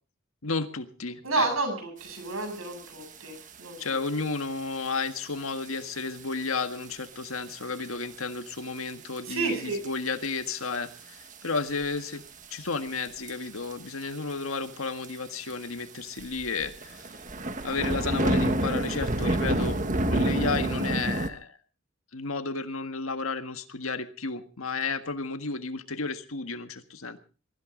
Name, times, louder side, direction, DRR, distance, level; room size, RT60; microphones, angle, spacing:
voice 1, 0.4-1.5 3.8-12.2 12.5-17.1 17.6-21.6 22.1-27.2, left 4 dB, 85° left, 8 dB, 1.7 m, -32 dB
voice 2, 1.2-4.0 9.3-9.8, right 3 dB, 85° right, 6 dB, 7.9 m, -30 dB
sound 1, 2.6-2.7 3.0-3.4 4.1-4.2 4.9-5.0 5.6-5.7 6.0-6.1 6.3-6.4 7.5-7.8 8.2-8.3 9.2-9.3 9.8-10.3 10.6-10.8 11.3-12.0 13.0-13.3 13.6-13.7 14.0-14.1 14.3-14.4 15.0-15.1 15.5-15.6 16.2-21.3, right 1 dB, 35° right, 1.5 m, -28 dB
23.0 x 15.0 x 3.9 m, 0.37 s
head